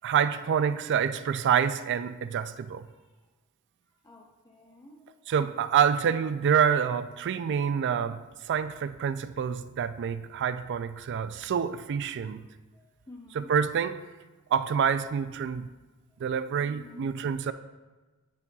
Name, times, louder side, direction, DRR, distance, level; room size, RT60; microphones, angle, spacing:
voice 1, 0.0-2.9 5.3-12.5 13.3-14.0 14.5-15.7 16.2-17.5, right 7 dB, 50° right, 12 dB, 0.3 m, -27 dB
voice 2, 4.0-5.3 12.7-13.5 16.1-16.2 16.6-17.0, left 2 dB, 15° left, -2 dB, 0.6 m, -51 dB
9.7 x 5.4 x 2.3 m, 1.2 s
head